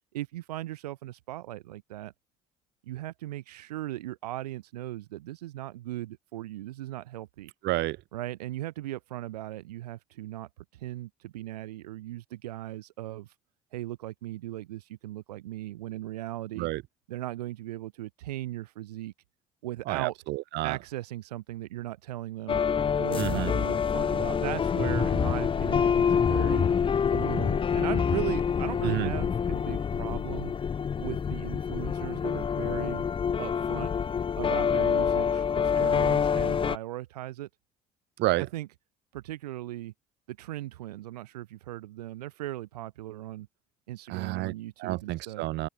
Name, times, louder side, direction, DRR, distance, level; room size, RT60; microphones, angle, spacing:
voice 1, 0.1-2.1 2.8-7.5 8.1-13.3 13.7-16.7 17.1-19.1 19.6-20.2 20.6-22.6 23.0-26.7 27.1-30.5 31.0-33.0 33.4-33.9 34.4-37.5 38.5-38.7 39.1-39.9 40.3-43.5 43.9-45.5, right 15 dB, 90° right, 2.4 m, -38 dB
voice 2, 7.6-8.0 16.6-16.8 19.9-20.8 23.2-23.5 28.8-29.1 38.2-38.5 44.1-44.5 44.8-45.7, right 18 dB, 65° right, 0.6 m, -29 dB
sound 1, 22.5-36.8, left 7 dB, 25° left, 0.5 m, -26 dB
open air
hypercardioid pair, 65°, 20 cm